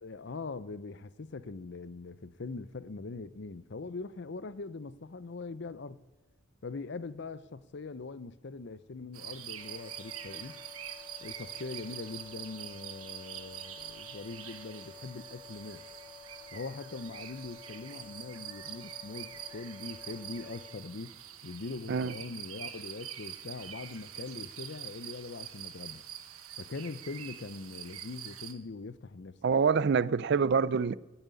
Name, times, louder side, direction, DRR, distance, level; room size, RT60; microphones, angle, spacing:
voice 1, 0.0-6.0 6.6-10.6 11.2-15.8 16.5-21.1 21.4-26.0 26.6-29.6, left 3 dB, 55° left, 0.6 m, -42 dB
sound 1, 9.1-28.5, right 10 dB, 90° right, 1.3 m, -45 dB
sound 2, 9.6-20.7, left 7 dB, 20° left, 2.3 m, -52 dB
voice 2, 29.4-31.0, right 5 dB, 55° right, 0.4 m, -26 dB
14.0 x 7.2 x 9.6 m
head